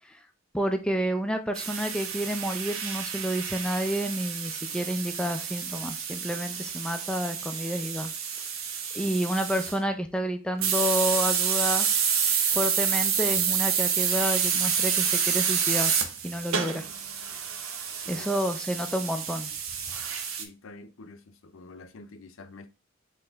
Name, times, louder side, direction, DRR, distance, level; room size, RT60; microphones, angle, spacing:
voice 1, 0.5-8.1 8.9-11.9 12.5-15.9 16.2-16.8 18.1-19.5, equal, 5° left, 0.4 m, -29 dB
sound 1, 1.6-9.8 10.6-20.4, right 7 dB, 90° right, 0.7 m, -29 dB
voice 2, 20.3-22.7, left 3 dB, 80° left, 0.6 m, -47 dB
4.0 x 3.2 x 3.9 m
head